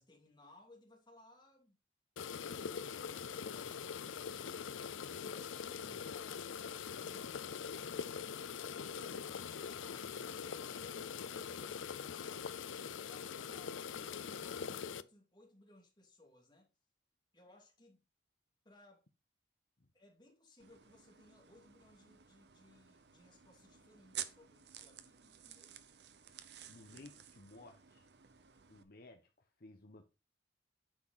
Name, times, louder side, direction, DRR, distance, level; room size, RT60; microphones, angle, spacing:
voice 1, 0.0-1.8 2.5-6.5 7.0-16.7 17.3-18.0 18.6-19.0 19.9-25.8, left 1 dB, 25° left, 2.8 m, -63 dB
sound 1, 2.2-15.0, left 7 dB, 90° left, 0.5 m, -43 dB
sound 2, 20.6-28.8, right 10 dB, 60° right, 0.8 m, -52 dB
voice 2, 26.7-28.1 28.7-30.1, left 2 dB, 50° left, 1.0 m, -57 dB
9.2 x 6.0 x 4.1 m
head